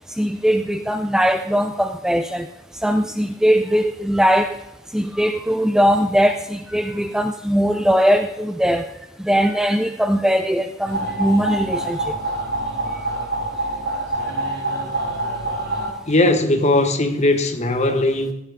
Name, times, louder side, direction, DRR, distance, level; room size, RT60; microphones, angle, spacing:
voice 1, 0.2-2.5 2.8-4.6 4.9-8.9 9.2-12.1, equal, 5° right, 0.4 m, -20 dB
sound 1, 10.8-15.9, right 2 dB, 85° right, 5.4 m, -26 dB
voice 2, 16.1-18.3, left 2 dB, 35° left, 1.3 m, -18 dB
16.0 x 11.0 x 3.5 m
head